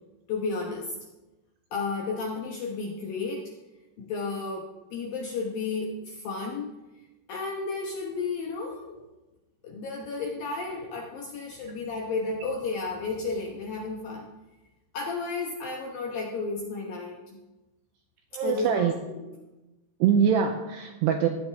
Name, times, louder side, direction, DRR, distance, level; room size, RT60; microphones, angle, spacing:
voice 1, 0.3-1.0 1.7-3.5 4.0-6.8 7.3-9.0 9.6-14.3 14.9-17.4 18.4-19.3, left 4 dB, 75° left, -1 dB, 2.1 m, -33 dB
voice 2, 18.3-18.9 20.0-21.3, right 8 dB, 85° right, 4 dB, 2.4 m, -23 dB
15.5 x 11.0 x 3.4 m, 1.1 s
omnidirectional pair, 5.7 m